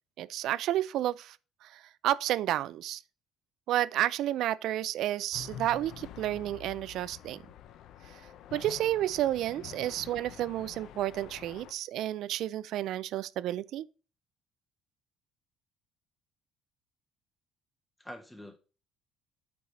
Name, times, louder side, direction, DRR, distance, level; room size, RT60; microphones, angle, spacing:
voice 1, 0.2-1.4 1.6-3.0 3.7-7.4 8.5-13.9, right 13 dB, 60° right, 0.4 m, -31 dB
sound 1, 5.3-11.7, left 10 dB, 60° left, 0.6 m, -47 dB
voice 2, 18.0-18.6, equal, 5° left, 0.7 m, -46 dB
8.6 x 4.8 x 4.1 m
cardioid pair, 160°, 0 cm